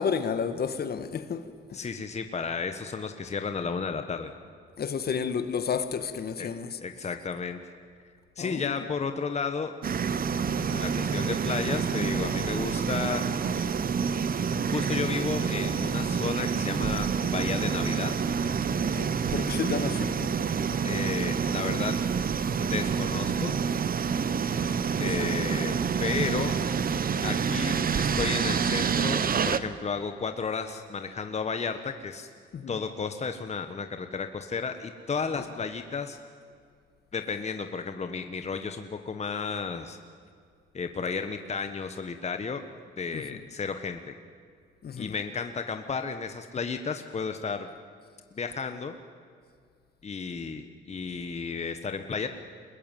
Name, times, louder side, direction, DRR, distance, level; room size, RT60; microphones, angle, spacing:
voice 1, 0.0-1.8 4.8-6.8 8.4-8.8 18.8-20.1 32.5-32.7 35.3-35.4 43.1-43.4 44.8-45.1, left 6 dB, 50° left, 1.8 m, -31 dB
voice 2, 1.7-4.3 6.4-6.5 6.8-7.6 8.4-9.8 10.6-13.2 13.5-13.7 14.7-18.1 20.8-22.0 22.6-23.6 25.0-25.7 26.0-26.6 27.2-32.3 32.7-36.2 37.1-40.0 40.7-42.6 43.0-44.1 45.0-47.7 48.3-48.9 50.0-52.3, left 5 dB, 35° left, 1.4 m, -33 dB
sound 1, 9.8-29.6, right 6 dB, 45° right, 1.2 m, -28 dB
25.0 x 21.0 x 9.3 m
cardioid pair, 90°, 20 cm